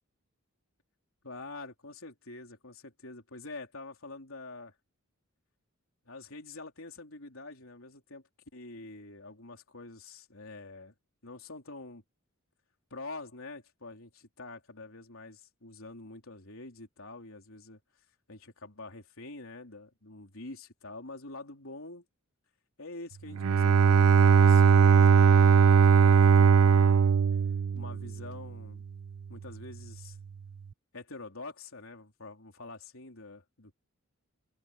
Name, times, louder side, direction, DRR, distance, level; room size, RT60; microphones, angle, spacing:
voice 1, 1.2-4.7 6.1-10.9 11.2-12.0 12.9-17.8 18.3-22.0 22.8-27.1 27.7-28.8 29.3-30.2 30.9-33.7, left 3 dB, 70° left, 3.9 m, -46 dB
Bowed string instrument, 23.3-28.3, right 6 dB, 85° right, 0.5 m, -20 dB
head